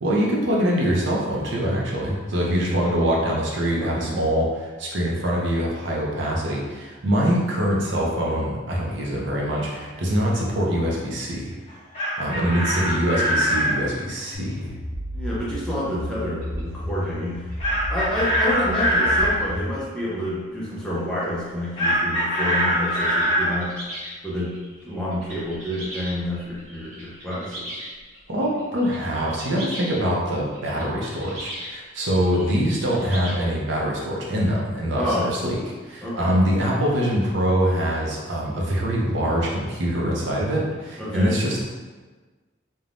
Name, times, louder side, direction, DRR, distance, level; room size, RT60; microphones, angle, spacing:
voice 1, 0.0-11.6 12.2-14.7 28.3-35.6 35.8-41.6, equal, 65° right, -3 dB, 0.6 m, -24 dB
voice 2, 3.8-4.2 15.1-17.5 17.9-23.7 24.2-24.6 24.8-27.7 34.9-35.3 36.0-36.4 41.0-41.3, equal, 5° left, -8 dB, 0.5 m, -28 dB
Chicken rooster, 11.7-13.8 17.6-19.4 21.8-23.5, equal, 30° left, 0.9 m, -22 dB
sound 1, 14.3-19.7, equal, 55° left, 0.4 m, -32 dB
sound 2, 16.1-16.2 16.4-16.6 17.0-19.9 20.2-20.4 21.0-21.1 21.5-33.3, equal, 80° right, 0.9 m, -40 dB
3.2 x 2.2 x 2.5 m, 1.3 s
head